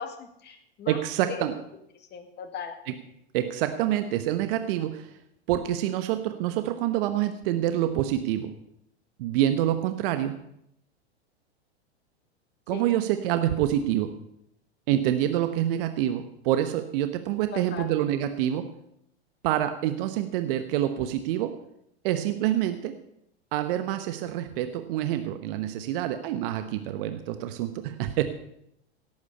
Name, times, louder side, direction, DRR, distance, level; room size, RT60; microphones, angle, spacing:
voice 1, 0.0-1.0 1.2-1.5 1.9-2.7 12.7-12.8 17.5-17.9, left 7 dB, 30° left, 5 dB, 2.2 m, -38 dB
voice 2, 0.9-1.6 2.9-3.0 3.3-5.1 5.5-8.5 9.2-10.3 12.7-14.1 14.9-18.7 19.4-21.6 22.0-22.9 23.5-28.2, right 12 dB, 55° right, 9 dB, 1.1 m, -27 dB
17.5 x 8.6 x 5.5 m, 0.77 s
hypercardioid pair, 100°, 33 cm